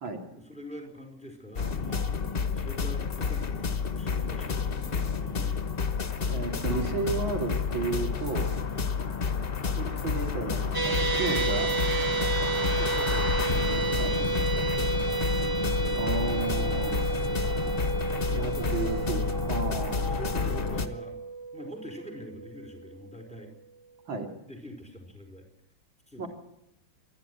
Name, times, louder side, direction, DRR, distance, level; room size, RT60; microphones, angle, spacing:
voice 1, 0.3-2.1 2.5-3.7 4.0-5.6 12.6-13.4 14.0-15.0 18.4-18.7 20.0-21.1 21.5-23.5 24.5-25.4 26.1-26.3, equal, 5° left, 3 dB, 4.8 m, -45 dB
sound 1, 1.6-20.9, left 5 dB, 35° left, 1.3 m, -30 dB
voice 2, 6.3-8.5 9.8-11.7 14.0-14.2 16.0-17.0 18.3-20.2 24.1-24.3 26.2-26.3, right 4 dB, 85° right, 3 dB, 3.5 m, -33 dB
sound 2, 10.7-23.1, right 4 dB, 25° right, 0.5 m, -31 dB
27.0 x 11.0 x 9.6 m, 0.87 s
omnidirectional pair, 2.1 m